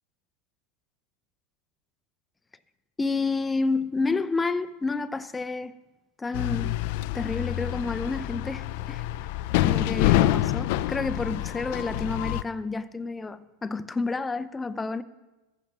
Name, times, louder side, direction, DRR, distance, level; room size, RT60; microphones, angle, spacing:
voice 1, 3.0-5.7 6.2-6.8 7.1-9.0 9.6-15.0, left 3 dB, 15° left, 0.6 m, -29 dB
sound 1, 6.3-12.4, left 14 dB, 65° left, 0.4 m, -27 dB
14.0 x 7.1 x 6.0 m
hypercardioid pair, 110°, 0 cm